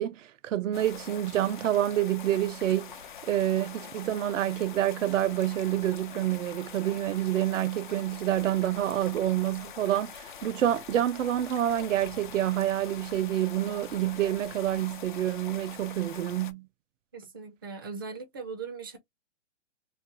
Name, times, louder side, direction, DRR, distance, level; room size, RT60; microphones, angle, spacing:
voice 1, 0.0-3.0 3.2-16.7, right 12 dB, 85° right, 0.5 m, -28 dB
sound 1, 0.7-16.5, left 8 dB, 45° left, 0.4 m, -45 dB
voice 2, 17.1-19.0, right 5 dB, 20° right, 0.4 m, -39 dB
3.2 x 2.4 x 2.9 m
hypercardioid pair, 155°, 37 cm